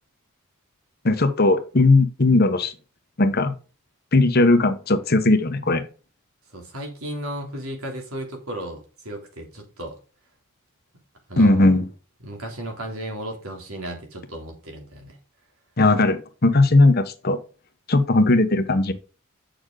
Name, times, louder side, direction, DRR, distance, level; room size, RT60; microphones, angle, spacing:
voice 1, 1.0-2.7 3.2-3.5 4.1-5.8 11.4-11.8 15.8-17.4 17.9-18.9, left 2 dB, 45° left, 9 dB, 1.0 m, -18 dB
voice 2, 6.5-10.0 11.3-11.7 12.2-15.2, right 1 dB, 85° right, 2 dB, 3.1 m, -34 dB
7.9 x 6.6 x 3.8 m, 0.35 s
head